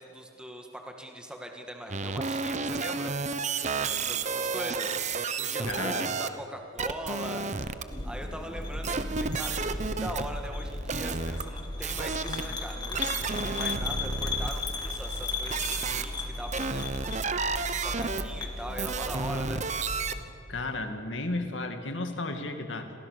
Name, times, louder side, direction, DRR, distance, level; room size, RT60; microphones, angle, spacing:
voice 1, 0.0-3.1 3.8-7.5 8.0-17.2 17.5-19.6, equal, 5° right, 3 dB, 1.9 m, -41 dB
sound 1, 1.9-6.3 6.8-7.8 8.8-11.4 11.8-12.5 12.9-16.0 16.5-20.1, right 4 dB, 35° right, 1.0 m, -32 dB
voice 2, 5.7-6.1 15.9-16.0 20.5-22.9, left 2 dB, 65° left, 6 dB, 2.3 m, -33 dB
sound 2, 7.9-20.2, left 2 dB, 20° left, 2.0 m, -35 dB
29.5 x 22.5 x 6.7 m, 2.7 s
head